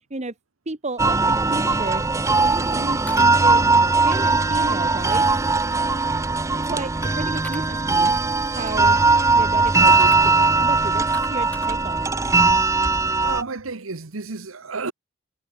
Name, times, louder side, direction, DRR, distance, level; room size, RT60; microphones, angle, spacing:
voice 1, 0.6-2.1 2.4-3.6 4.0-5.3 6.6-8.1 8.5-9.0 9.3-12.2, right 2 dB, 35° right, 1.7 m, -33 dB
sound 1, 1.0-13.4, right 3 dB, 15° right, 0.5 m, -19 dB
sound 2, 3.0-3.7 7.0-7.6 8.4-8.8 9.9-10.2 10.8-11.8, left 1 dB, 10° left, 7.5 m, -40 dB
voice 2, 13.2-14.9, right 4 dB, 75° right, 1.3 m, -31 dB
head